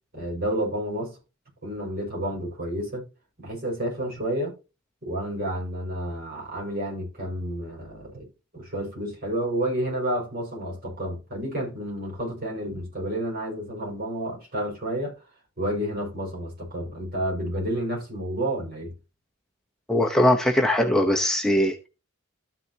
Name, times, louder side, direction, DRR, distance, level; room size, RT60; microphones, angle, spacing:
voice 1, 0.1-1.2 1.6-3.1 3.4-4.6 5.0-8.3 8.5-15.2 15.6-18.9, right 1 dB, 50° right, 5.6 m, -30 dB
voice 2, 19.9-21.9, left 1 dB, 5° left, 0.8 m, -21 dB
13.5 x 6.5 x 2.8 m
head